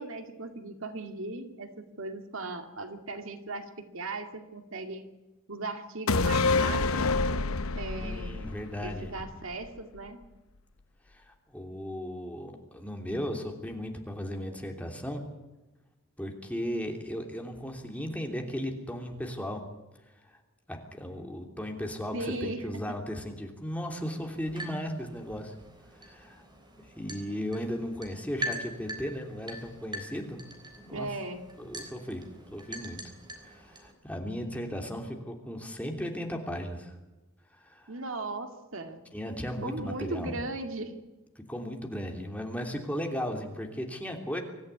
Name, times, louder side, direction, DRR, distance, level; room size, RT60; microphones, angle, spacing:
voice 1, 0.0-5.1 5.5-7.1 7.7-8.4 8.8-10.2 22.1-22.8 30.9-31.4 37.9-39.0 39.6-41.0, right 2 dB, 65° right, 6 dB, 2.2 m, -37 dB
sound 1, 6.1-9.7 10.0-10.1, left 3 dB, 75° left, 0.9 m, -28 dB
voice 2, 8.0-9.1 11.1-15.2 16.2-19.6 20.2-20.4 20.7-25.5 26.0-26.4 27.0-30.4 30.8-31.1 31.6-32.2 32.5-33.0 33.4-36.9 37.5-37.9 39.1-40.3 41.3-44.4, equal, 5° left, 2 dB, 3.1 m, -36 dB
sound 2, 24.2-33.9, right 1 dB, 20° right, 3.8 m, -43 dB
25.0 x 14.0 x 9.7 m, 1.1 s
head